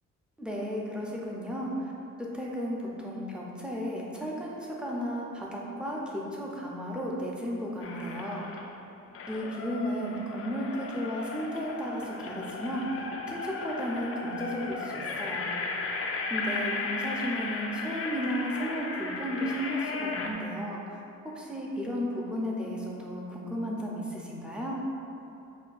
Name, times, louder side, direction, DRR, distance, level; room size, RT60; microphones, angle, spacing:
voice 1, 0.4-1.9 2.2-8.5 9.3-15.5 16.3-24.8, equal, 5° right, -4 dB, 0.6 m, -34 dB
sound 1, 7.8-8.7 9.1-20.3, left 4 dB, 50° left, 0.4 m, -36 dB
5.7 x 2.2 x 2.5 m, 2.8 s
cardioid pair, 90°, 30 cm